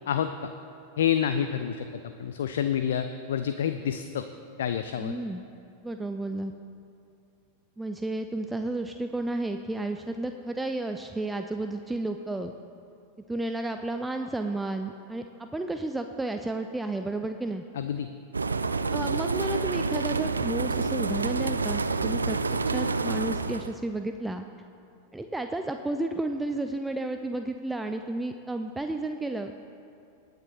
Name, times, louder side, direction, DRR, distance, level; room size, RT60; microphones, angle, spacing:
voice 1, 1.0-1.9 2.2-4.2 4.6-5.1 17.7-18.1, left 9 dB, 60° left, 9 dB, 0.4 m, -28 dB
voice 2, 5.0-5.4 5.8-6.5 7.8-12.5 13.3-17.6 18.9-24.5 25.1-29.6, right 2 dB, 5° right, 6 dB, 0.4 m, -32 dB
sound 1, 18.3-23.7, right 4 dB, 75° right, 0.3 m, -28 dB
19.0 x 9.1 x 2.7 m, 2.7 s
figure-of-eight pair, 90°, 0 cm